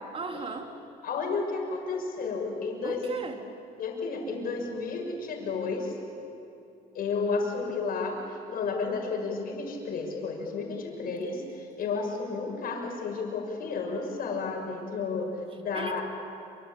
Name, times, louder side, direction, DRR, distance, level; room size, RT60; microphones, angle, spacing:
voice 1, 0.1-0.7 2.8-3.4 15.7-16.0, right 4 dB, 35° right, 4 dB, 3.0 m, -36 dB
voice 2, 1.0-3.0 3.8-5.9 6.9-16.0, left 4 dB, 60° left, 1 dB, 6.5 m, -32 dB
26.5 x 26.0 x 8.6 m, 2.8 s
cardioid pair, 110°, 17 cm